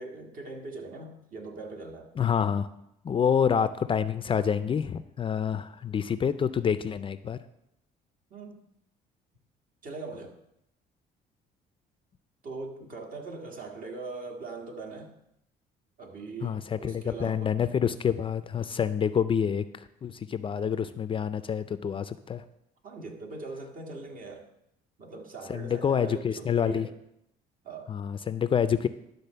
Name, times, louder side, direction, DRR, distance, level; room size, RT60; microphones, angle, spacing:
voice 1, 0.0-2.1 8.3-8.6 9.8-10.4 12.4-15.1 16.0-17.6 22.8-24.5 25.0-26.9 27.6-27.9, right 3 dB, 55° right, 3 dB, 1.7 m, -41 dB
voice 2, 2.2-2.7 3.0-7.4 16.4-22.4 25.5-26.9 27.9-28.9, left 7 dB, 30° left, 13 dB, 0.4 m, -27 dB
11.5 x 4.0 x 6.8 m, 0.81 s
cardioid pair, 110°, 17 cm